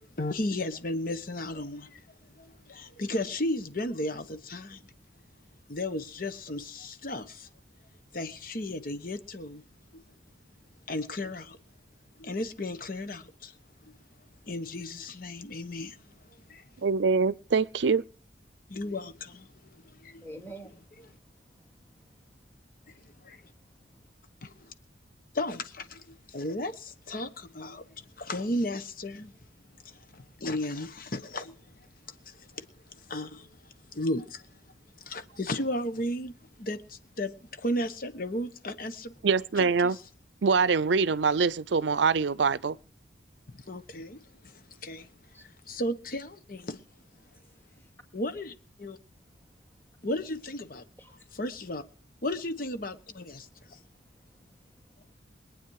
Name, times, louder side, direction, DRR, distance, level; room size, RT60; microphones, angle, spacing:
voice 1, 0.0-4.8 5.7-7.5 8.1-9.6 10.9-11.6 12.2-13.6 13.8-13.9 14.4-16.7 18.7-20.3 22.9-23.4 24.4-24.7 25.3-29.3 29.8-34.5 35.0-39.1 39.6-40.0 43.5-46.8 48.1-49.0 50.0-51.8 52.2-53.8, left 1 dB, 50° left, 1.1 m, -35 dB
voice 2, 16.8-18.0 39.2-40.0 40.4-42.8, right 5 dB, 80° right, 0.5 m, -24 dB
voice 3, 20.2-20.8 45.3-45.4 47.8-47.9 51.0-51.2 53.5-53.7 54.4-55.1, right 1 dB, 15° left, 2.5 m, -48 dB
22.0 x 9.2 x 4.8 m
head